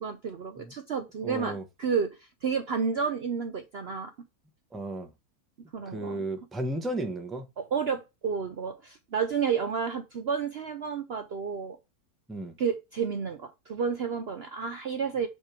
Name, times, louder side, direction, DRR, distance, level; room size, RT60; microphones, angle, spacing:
voice 1, 0.0-4.1 5.7-6.2 7.6-11.8 12.6-15.3, right 6 dB, 55° right, 0.8 m, -31 dB
voice 2, 1.2-1.6 4.7-5.1 5.9-7.5 12.3-12.6, right 1 dB, ahead, 0.8 m, -34 dB
7.4 x 3.5 x 4.5 m
omnidirectional pair, 1.6 m